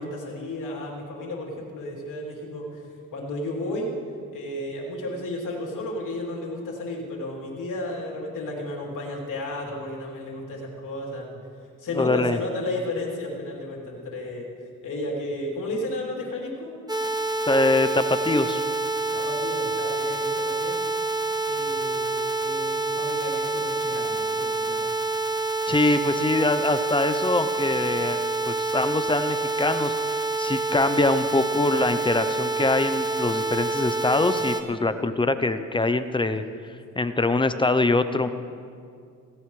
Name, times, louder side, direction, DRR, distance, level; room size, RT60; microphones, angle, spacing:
voice 1, 0.0-2.8 3.1-3.9 4.3-11.4 11.8-14.5 14.8-16.7 19.1-20.8 21.4-24.9 34.1-35.1 36.9-37.0 38.2-38.3, left 1 dB, 65° left, -2 dB, 3.3 m, -33 dB
voice 2, 11.9-12.4 17.4-18.6 25.7-36.4 37.0-38.3, left 2 dB, 15° left, 11 dB, 0.6 m, -23 dB
sound 1, 16.9-34.6, right 3 dB, 10° right, 1.0 m, -27 dB
17.5 x 16.5 x 3.2 m, 2.3 s
cardioid pair, 100°, 34 cm